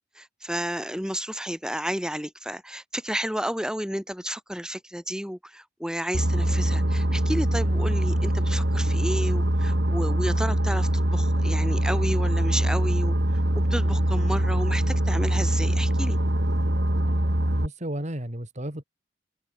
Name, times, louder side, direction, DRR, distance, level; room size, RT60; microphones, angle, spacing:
voice 1, 0.2-13.2 13.7-16.2, equal, 5° right, 7.2 m, -31 dB
Boat Water vehicle, 6.1-17.7, right 1 dB, 65° right, 3.3 m, -23 dB
voice 2, 17.6-18.8, right 1 dB, 40° right, 4.1 m, -33 dB
open air
head